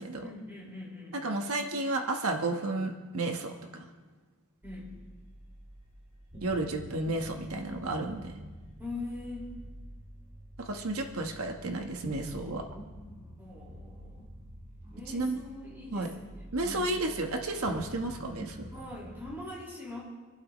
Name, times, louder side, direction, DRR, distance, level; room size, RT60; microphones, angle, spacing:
voice 1, 0.2-1.2 4.6-4.9 8.8-9.5 13.4-14.3 14.9-16.9 18.7-20.0, left 2 dB, 10° right, -6 dB, 5.1 m, -42 dB
voice 2, 1.1-3.9 6.4-8.4 10.6-12.6 15.1-15.4 15.9-16.1 16.5-18.7, right 2 dB, 85° right, 3 dB, 1.3 m, -32 dB
sound 1, 4.6-19.4, equal, 35° right, 2.4 m, -48 dB
27.0 x 12.0 x 3.1 m, 1.3 s
head